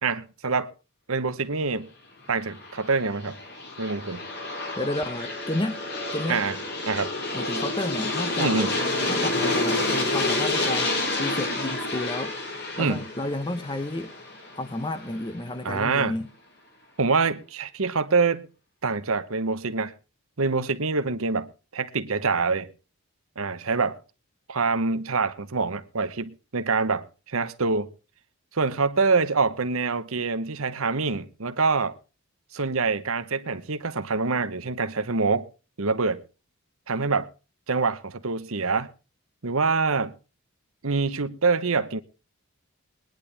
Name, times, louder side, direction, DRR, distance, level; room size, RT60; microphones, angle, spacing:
voice 1, 0.0-0.7 1.1-1.9 2.3-3.4 3.8-4.2 6.3-6.6 6.9-7.1 8.4-8.7 12.8-13.0 15.6-16.1 17.0-18.4 18.8-19.9 20.4-22.7 23.4-24.0 24.5-27.9 28.5-32.0 32.5-35.5 35.8-36.2 36.9-37.3 37.7-38.9 39.4-40.1 40.8-42.0, right 4 dB, 70° right, 1.0 m, -25 dB
Aircraft, 2.4-15.2, left 2 dB, 45° left, 3.6 m, -29 dB
voice 2, 4.7-5.8 6.1-6.4 7.3-8.6 9.1-12.4 12.8-14.1 14.6-16.3, left 1 dB, 20° left, 0.7 m, -31 dB
21.0 x 10.5 x 3.4 m
head